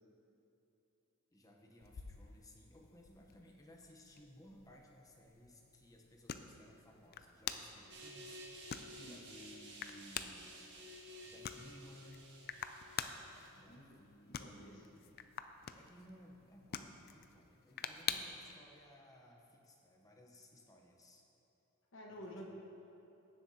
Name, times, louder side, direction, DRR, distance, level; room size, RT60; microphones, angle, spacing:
voice 1, 1.3-10.6 11.2-12.2 13.5-15.1 15.7-21.2 22.1-22.4, left 1 dB, 15° left, 1 dB, 0.9 m, -60 dB
sound 1, 1.8-18.5, left 8 dB, 45° left, 0.4 m, -48 dB
sound 2, 7.9-13.5, equal, 55° right, 1.5 m, -53 dB
voice 2, 9.0-9.3 13.7-14.0 14.2-14.8 21.9-22.5, equal, 60° left, -2 dB, 1.4 m, -52 dB
15.5 x 7.5 x 2.8 m, 3.0 s
head